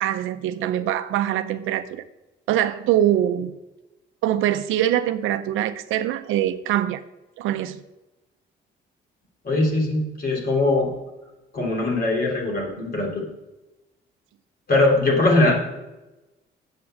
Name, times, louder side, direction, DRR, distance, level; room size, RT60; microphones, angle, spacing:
voice 1, 0.0-2.0 2.5-3.5 4.2-7.0 7.4-7.8, right 12 dB, 90° right, 11 dB, 0.6 m, -23 dB
voice 2, 9.4-10.9 11.5-13.3 14.7-15.5, left 2 dB, 50° left, 0 dB, 3.2 m, -21 dB
7.6 x 5.9 x 7.7 m, 1.0 s
cardioid pair, 90°, 20 cm